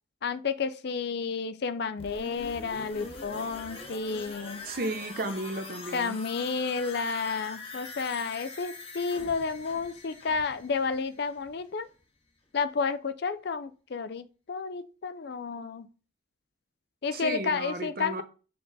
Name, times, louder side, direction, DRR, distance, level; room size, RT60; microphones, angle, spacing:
voice 1, 0.2-4.7 5.9-11.9 12.5-15.9 17.0-18.2, left 5 dB, 50° left, 0.4 m, -31 dB
sound 1, 2.0-11.7 12.0-12.1, left 3 dB, 30° left, 0.9 m, -44 dB
voice 2, 4.6-6.2 17.1-18.2, right 2 dB, 45° right, 0.7 m, -34 dB
6.9 x 3.7 x 4.0 m
head